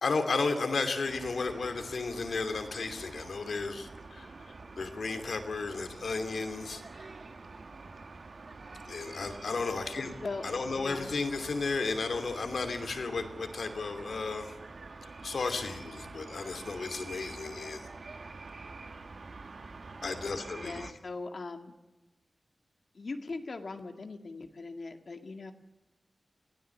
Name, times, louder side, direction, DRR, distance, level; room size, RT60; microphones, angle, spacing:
voice 1, 0.0-6.8 8.9-10.1 10.4-14.5 15.0-17.8 20.0-20.9, left 4 dB, 80° left, 7 dB, 2.8 m, -33 dB
sound 1, 1.1-20.9, right 3 dB, 65° right, 1.5 m, -47 dB
voice 2, 10.7-11.1 20.6-21.7 22.9-25.5, left 3 dB, 65° left, 6 dB, 2.0 m, -40 dB
22.5 x 16.0 x 8.4 m, 1.1 s
wide cardioid pair, 75°, 0 cm